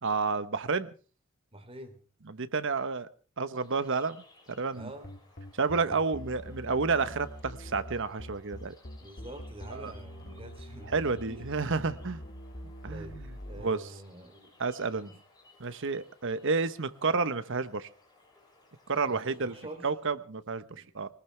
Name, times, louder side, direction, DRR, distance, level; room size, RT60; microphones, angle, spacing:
voice 1, 0.0-0.9 2.3-3.1 3.4-4.2 4.6-4.9 5.6-8.7 9.8-9.9 10.9-12.2 12.8-13.3 13.6-13.8 14.6-15.1 15.6-17.9 18.9-19.5 19.8-21.1, right 4 dB, 60° right, 13 dB, 1.1 m, -30 dB
voice 2, 1.5-2.0 4.7-5.1 9.0-11.6 12.9-13.1 13.4-14.5 14.9-15.1 19.1-19.9 20.7-20.9, right 1 dB, 25° right, 5 dB, 3.2 m, -46 dB
sound 1, 3.6-19.8, left 2 dB, 20° left, 6.8 m, -61 dB
sound 2, 4.8-13.6, equal, 45° left, 1.7 m, -44 dB
21.0 x 19.5 x 3.4 m, 0.37 s
head